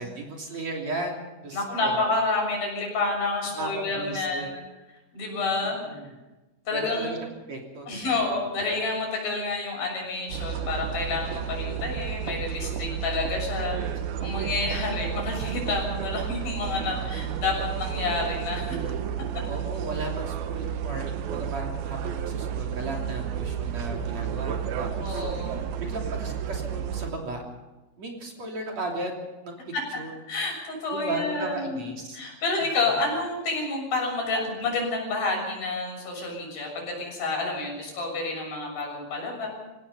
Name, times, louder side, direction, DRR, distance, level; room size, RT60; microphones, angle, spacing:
voice 1, 0.0-2.0 3.6-4.5 5.9-6.1 6.7-7.2 7.5-8.2 19.5-25.2 25.8-27.4 28.0-29.1 29.4-29.6 29.9-30.2 30.9-32.2 32.6-32.7, right 2 dB, 45° right, 0 dB, 4.1 m, -35 dB
voice 2, 1.5-4.6 5.1-5.8 6.7-7.1 7.9-13.8 14.2-18.8 25.0-25.6 29.7-29.8 30.3-31.9 32.1-39.5, left 3 dB, 70° left, 1 dB, 8.5 m, -29 dB
sound 1, 10.3-27.1, right 8 dB, 75° right, 3.0 m, -31 dB
26.5 x 17.5 x 5.6 m, 1.1 s
omnidirectional pair, 4.4 m